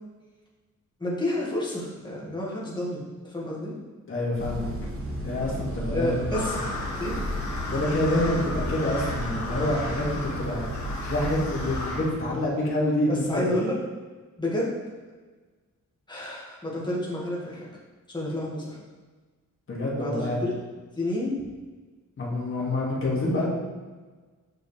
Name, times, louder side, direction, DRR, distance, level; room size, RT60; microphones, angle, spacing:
voice 1, 1.0-3.0 3.3-3.8 5.9-6.5 7.0-7.2 13.1-13.7 14.4-14.7 16.1-17.7 18.1-18.8 20.0-20.5 20.9-21.4, left 1 dB, 15° left, -5 dB, 1.8 m, -29 dB
voice 2, 4.1-4.7 5.2-6.2 7.7-13.5 19.7-20.4 22.2-23.5, left 1 dB, 40° left, -5 dB, 2.2 m, -27 dB
sound 1, 4.4-11.9, equal, 45° right, 1.3 m, -33 dB
sound 2, 6.3-12.1, left 2 dB, 60° left, 1.5 m, -35 dB
7.6 x 6.3 x 3.3 m, 1.3 s
wide cardioid pair, 160°, 32 cm